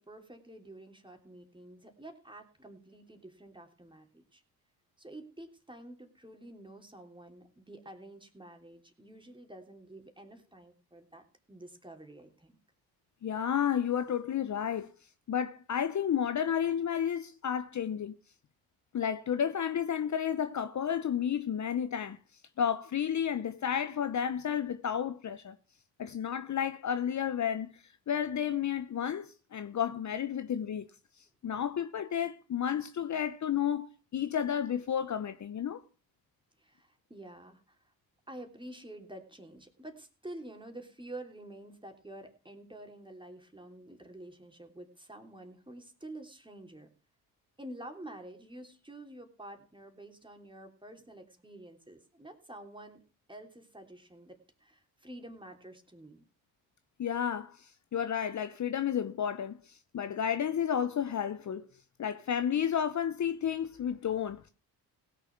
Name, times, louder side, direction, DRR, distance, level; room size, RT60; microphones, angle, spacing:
voice 1, 0.0-4.4 5.0-12.6 36.6-37.8 38.3-46.9 47.6-53.0 53.3-56.2, right 1 dB, 10° right, 3.1 m, -49 dB
voice 2, 13.2-14.9 15.3-18.2 18.9-22.2 22.6-25.6 26.0-27.7 28.1-30.9 31.4-35.8 57.0-61.7 62.0-64.5, left 8 dB, 40° left, 0.9 m, -32 dB
17.0 x 6.8 x 5.9 m
supercardioid pair, 60°, 42 cm